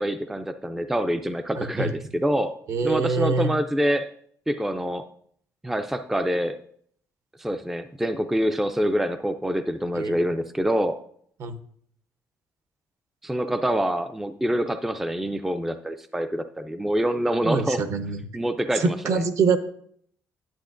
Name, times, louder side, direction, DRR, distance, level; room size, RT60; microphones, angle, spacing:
voice 1, 0.0-2.5 2.8-4.1 4.5-5.0 5.6-6.6 7.4-11.0 13.2-17.8 18.3-19.2, equal, 5° right, 9 dB, 0.3 m, -26 dB
voice 2, 1.6-1.9 2.7-3.5 9.9-10.1 11.4-11.5 17.4-18.2 18.8-19.6, right 4 dB, 55° right, 9 dB, 0.8 m, -24 dB
10.5 x 7.9 x 2.5 m, 0.62 s
cardioid pair, 135°, 6 cm